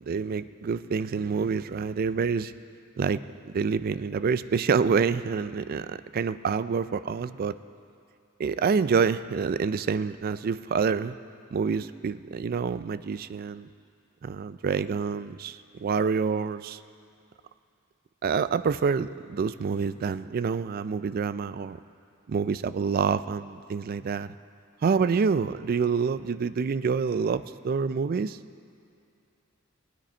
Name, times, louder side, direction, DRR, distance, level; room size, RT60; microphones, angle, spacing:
voice 1, 0.1-2.5 3.0-7.6 8.4-11.2 11.5-13.7 14.2-16.8 18.2-21.8 22.3-24.3 24.8-28.4, right 5 dB, 45° right, 14 dB, 0.3 m, -27 dB
18.5 x 10.0 x 4.3 m, 2.5 s
head